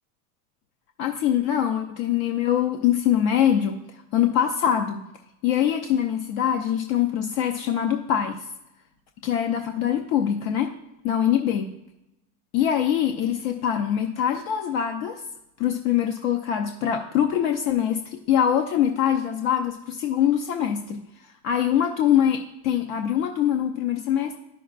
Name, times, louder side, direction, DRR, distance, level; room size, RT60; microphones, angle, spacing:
voice 1, 1.0-3.8 4.1-5.0 5.4-8.4 9.2-10.7 11.0-11.7 12.5-15.2 15.6-21.0 21.4-24.4, left 9 dB, 65° left, 4 dB, 0.8 m, -23 dB
11.0 x 5.7 x 2.5 m, 0.87 s
supercardioid pair, 110°, 44 cm